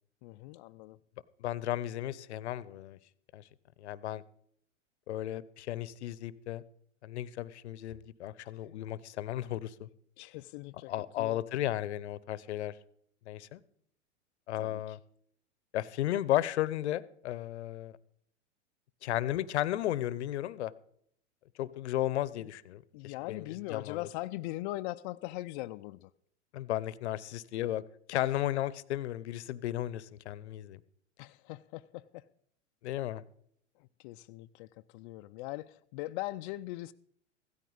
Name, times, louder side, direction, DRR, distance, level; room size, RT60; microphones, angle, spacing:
voice 1, 0.2-1.0 8.6-8.7 10.2-11.4 14.5-15.0 22.4-22.5 22.9-26.1 28.1-28.4 31.2-32.2 33.8-36.9, left 18 dB, 45° left, 0.5 m, -41 dB
voice 2, 1.4-3.0 3.3-3.4 3.8-4.2 5.1-6.6 7.0-9.9 10.9-12.7 13.3-13.6 14.5-15.0 15.7-18.0 19.0-20.7 21.6-24.0 26.5-27.8 28.1-30.8 32.8-33.2, left 13 dB, 70° left, 0.8 m, -34 dB
16.0 x 13.5 x 4.0 m
hypercardioid pair, 105°, 36 cm